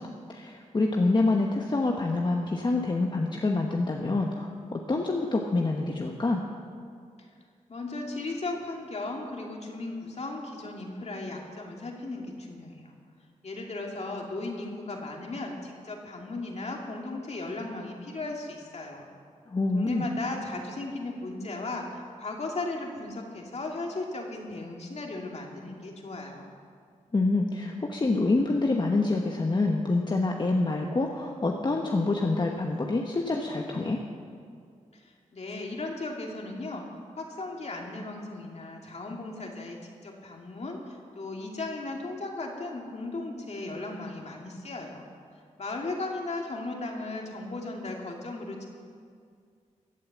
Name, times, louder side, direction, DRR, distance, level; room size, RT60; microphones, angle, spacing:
voice 1, 0.0-6.4 19.5-20.0 27.1-34.0, left 2 dB, 35° left, 1 dB, 1.1 m, -26 dB
voice 2, 7.7-12.9 13.4-19.1 19.7-26.4 34.9-45.1 45.6-48.7, left 2 dB, 55° left, 0 dB, 2.4 m, -36 dB
15.5 x 8.7 x 7.3 m, 2.2 s
cardioid pair, 75°, 13 cm